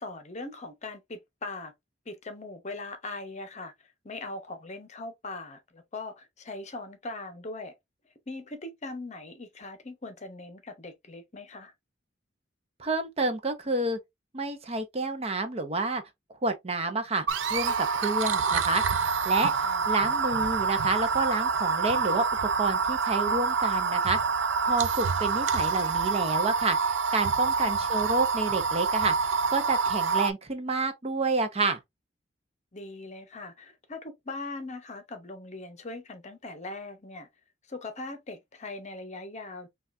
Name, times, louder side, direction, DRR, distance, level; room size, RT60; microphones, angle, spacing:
voice 1, 0.0-1.7 2.1-3.7 4.0-7.7 8.3-11.7 19.6-19.9 27.6-27.9 32.7-37.3 37.7-39.7, left 2 dB, 40° left, 0.8 m, -40 dB
voice 2, 12.8-14.0 14.3-16.0 16.4-19.5 19.9-24.2 24.6-29.1 29.5-31.8, right 3 dB, 35° right, 0.6 m, -29 dB
sound 1, 17.3-30.3, right 5 dB, 75° right, 0.4 m, -27 dB
5.6 x 2.4 x 2.6 m
head